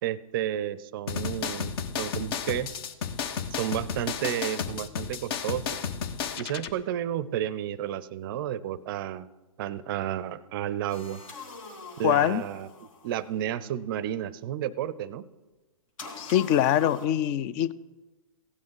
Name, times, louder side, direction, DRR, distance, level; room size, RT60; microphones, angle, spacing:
voice 1, 0.0-2.8 3.6-5.7 6.4-9.3 9.6-11.2 12.0-12.7 13.0-15.3, right 11 dB, 40° right, 19 dB, 0.5 m, -31 dB
sound 1, 1.1-6.7, left 7 dB, 40° left, 0.8 m, -33 dB
sound 2, 10.9-13.4 16.0-17.1, left 3 dB, 65° left, 2.2 m, -44 dB
voice 2, 12.0-12.4 16.2-17.7, left 11 dB, 25° left, 18 dB, 0.4 m, -23 dB
15.5 x 9.3 x 4.8 m, 1.1 s
figure-of-eight pair, 120°, 18 cm